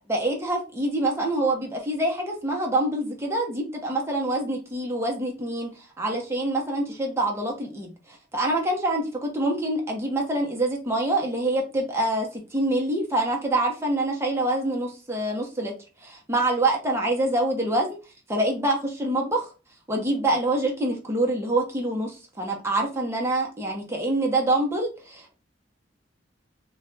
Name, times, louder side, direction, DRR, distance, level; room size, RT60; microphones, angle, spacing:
voice 1, 0.1-5.7 6.0-15.7 16.0-18.0 18.3-19.5 19.9-25.3, right 1 dB, 15° right, 0 dB, 0.8 m, -26 dB
2.4 x 2.2 x 3.9 m, 0.32 s
head